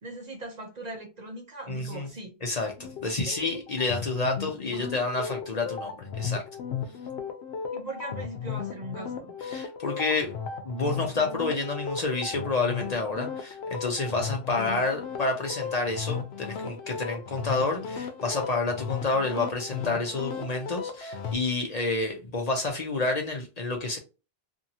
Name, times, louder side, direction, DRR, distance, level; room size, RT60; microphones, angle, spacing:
voice 1, 0.0-2.4 3.3-3.4 4.7-5.0 7.7-9.3 14.7-14.8, right 2 dB, 45° right, 0.7 m, -40 dB
voice 2, 1.7-2.1 2.4-2.7 3.0-6.4 9.4-10.3 10.6-24.0, left 3 dB, 45° left, 0.6 m, -29 dB
sound 1, 2.8-21.4, left 6 dB, 85° left, 0.8 m, -36 dB
2.7 x 2.6 x 2.7 m
omnidirectional pair, 1.0 m